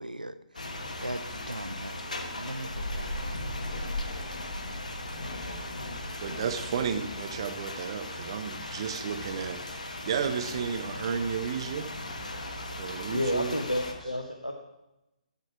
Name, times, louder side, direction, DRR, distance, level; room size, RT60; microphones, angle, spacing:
voice 1, 0.0-3.9, right 1 dB, 90° right, 12 dB, 0.5 m, -40 dB
sound 1, 0.5-13.9, left 1 dB, 65° left, 1.2 m, -37 dB
voice 2, 6.2-11.9 12.8-13.6, right 7 dB, 40° right, 8 dB, 0.7 m, -33 dB
voice 3, 13.1-14.5, left 1 dB, 90° left, 2 dB, 0.8 m, -30 dB
7.9 x 7.1 x 4.8 m, 0.94 s
figure-of-eight pair, 135°, 4 cm